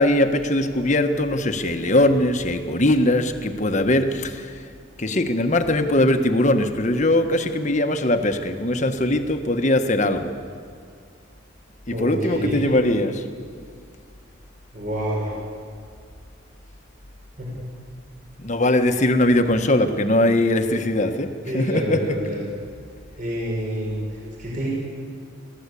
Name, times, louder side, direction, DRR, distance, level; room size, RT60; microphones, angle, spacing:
voice 1, 0.0-4.6 5.0-10.3 11.9-13.2 18.4-22.1, left 1 dB, 40° left, 6 dB, 1.4 m, -21 dB
voice 2, 11.9-12.7 14.7-15.3 17.4-17.7 21.5-22.4 23.2-24.7, equal, 45° right, -4 dB, 6.3 m, -28 dB
24.5 x 17.0 x 8.5 m, 2.1 s
head